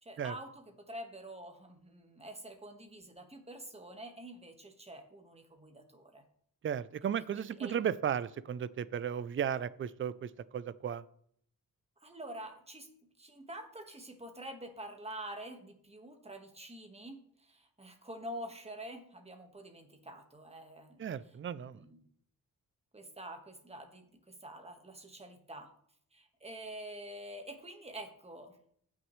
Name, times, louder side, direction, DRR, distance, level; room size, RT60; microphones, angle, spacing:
voice 1, 0.0-6.2 7.3-7.8 12.0-12.9 13.2-22.0 22.9-25.7 26.1-28.6, right 1 dB, 20° right, 4 dB, 1.6 m, -47 dB
voice 2, 6.6-11.0 21.0-21.8, right 8 dB, 35° right, 17 dB, 0.4 m, -35 dB
15.5 x 6.1 x 3.2 m, 0.66 s
wide cardioid pair, 105°, 35 cm